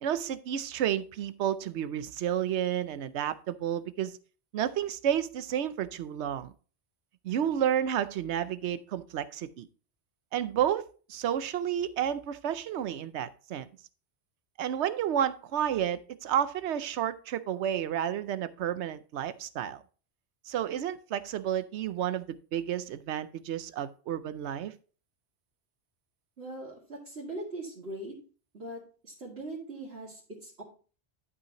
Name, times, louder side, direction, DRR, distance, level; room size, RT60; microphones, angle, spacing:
voice 1, 0.0-4.2 4.5-6.5 7.2-9.7 10.3-13.7 14.6-19.8 20.5-24.7, right 10 dB, 90° right, 0.9 m, -31 dB
voice 2, 26.4-28.1 28.5-30.6, right 2 dB, 65° right, 2.6 m, -41 dB
12.0 x 5.7 x 2.9 m
omnidirectional pair, 1.1 m